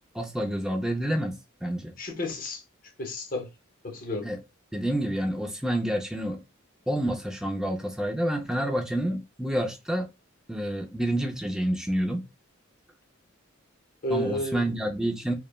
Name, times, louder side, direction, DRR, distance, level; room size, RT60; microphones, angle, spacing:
voice 1, 0.1-1.4 1.6-2.0 4.2-4.4 4.7-6.4 6.9-10.1 10.5-12.2 14.1-15.3, right 1 dB, 5° right, 0.4 m, -28 dB
voice 2, 2.0-2.6 3.0-3.5 3.8-4.3 14.0-14.7, left 1 dB, 40° left, 0.7 m, -31 dB
3.1 x 2.0 x 2.2 m
head